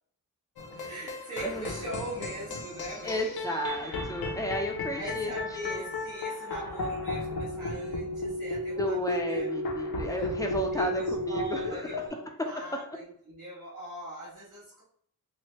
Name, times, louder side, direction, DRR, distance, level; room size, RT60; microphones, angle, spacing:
sound 1, 0.6-12.1, left 2 dB, 75° left, 0.7 m, -34 dB
voice 1, 0.7-3.9 4.9-9.5 10.2-10.3 10.7-14.8, right 2 dB, 55° right, -9 dB, 1.2 m, -41 dB
voice 2, 3.0-5.3 5.7-5.9 8.8-12.0, equal, 10° left, 2 dB, 0.5 m, -33 dB
3.2 x 2.1 x 3.1 m, 0.63 s
wide cardioid pair, 85°, 37 cm